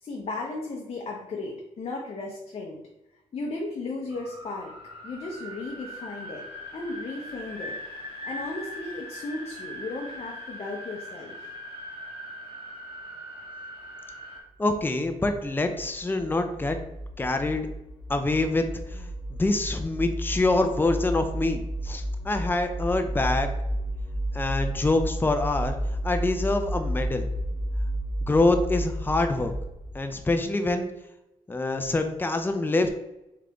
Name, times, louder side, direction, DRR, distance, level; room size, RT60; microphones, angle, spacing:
voice 1, 0.0-2.8 3.3-4.7 5.0-6.4 6.7-7.8 8.2-11.3, left 2 dB, 50° left, 0 dB, 0.7 m, -35 dB
sound 1, 4.1-14.4, equal, 45° right, 1.5 m, -40 dB
voice 2, 14.6-16.8 17.2-17.7 18.1-19.1 19.4-23.5 24.3-25.8 26.0-27.2 28.3-29.5 29.9-30.9 31.5-32.9, left 2 dB, 15° left, 6 dB, 0.5 m, -25 dB
sound 2, 14.9-30.2, equal, 10° right, 1.0 m, -32 dB
3.8 x 3.3 x 3.4 m, 0.91 s
cardioid pair, 70°, 13 cm